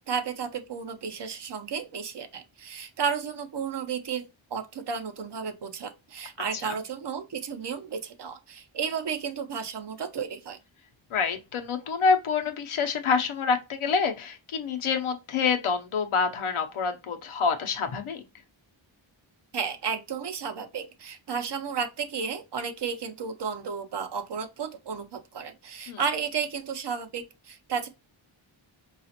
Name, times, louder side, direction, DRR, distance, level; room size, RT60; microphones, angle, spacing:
voice 1, 0.0-10.6 19.5-27.9, right 6 dB, 60° right, 0.7 m, -33 dB
voice 2, 11.1-18.2 25.9-26.0, left 5 dB, 85° left, 0.7 m, -27 dB
4.8 x 2.4 x 2.8 m
wide cardioid pair, 110°, 48 cm